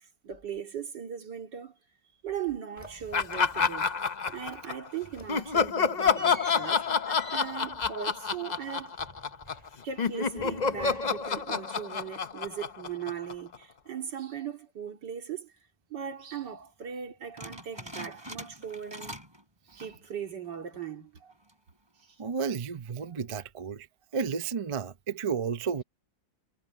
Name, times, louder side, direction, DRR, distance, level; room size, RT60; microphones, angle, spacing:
voice 1, 0.2-1.8 2.2-3.9 4.3-6.8 7.3-9.0 9.8-15.5 15.9-19.3 19.7-21.3 22.0-22.2 23.1-23.2, right 8 dB, 90° right, 2.9 m, -39 dB
sound 1, 2.8-4.0 4.3-4.7 5.0-10.0 10.3-11.6, equal, 15° left, 5.1 m, -49 dB
Laughter, 3.1-4.9 5.3-9.7 10.0-13.6, left 5 dB, 40° left, 0.6 m, -28 dB
sound 2, 17.4-19.4 19.7-20.1 20.5-20.6 21.3-21.7, right 1 dB, 15° right, 5.4 m, -43 dB
voice 2, 22.2-23.9 24.1-25.8, right 6 dB, 60° right, 0.3 m, -32 dB
omnidirectional pair, 1.8 m